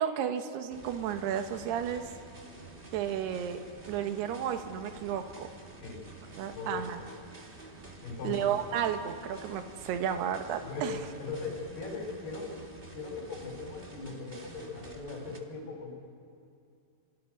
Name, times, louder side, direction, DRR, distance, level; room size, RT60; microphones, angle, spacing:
voice 1, 0.0-2.1 2.9-3.6 3.9-5.5 6.4-7.0 8.2-11.0, right 9 dB, 90° right, 7 dB, 3.3 m, -32 dB
sound 1, 0.7-15.4, right 2 dB, 25° right, 1.1 m, -49 dB
voice 2, 6.5-7.1 8.0-8.5 10.6-12.5 12.9-16.0, left 4 dB, 80° left, -1 dB, 6.7 m, -39 dB
28.5 x 26.0 x 6.5 m, 2.5 s
omnidirectional pair, 4.5 m